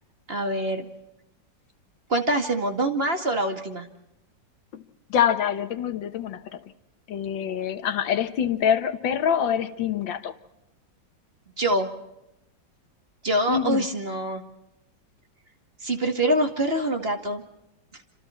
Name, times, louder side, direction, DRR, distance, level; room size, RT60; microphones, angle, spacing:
voice 1, 0.3-0.9 2.1-3.9 11.6-11.9 13.2-14.4 15.8-17.4, right 1 dB, 30° right, 2.2 m, -25 dB
voice 2, 5.1-6.7 7.1-10.3 13.5-13.9, left 8 dB, 90° left, 1.9 m, -25 dB
29.0 x 26.5 x 4.4 m
omnidirectional pair, 2.0 m